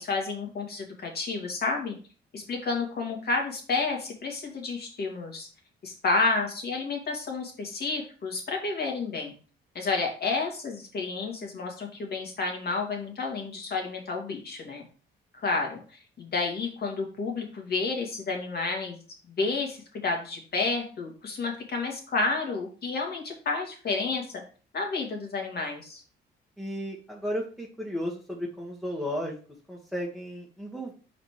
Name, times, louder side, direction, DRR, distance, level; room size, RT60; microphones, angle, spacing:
voice 1, 0.0-2.0 2.3-5.5 5.8-9.3 9.7-14.8 15.3-24.2 24.7-26.0, left 3 dB, 50° left, 2 dB, 2.3 m, -30 dB
voice 2, 26.6-29.4 29.7-30.9, equal, ahead, -3 dB, 1.6 m, -34 dB
5.1 x 4.2 x 4.9 m, 0.38 s
cardioid pair, 90°, 20 cm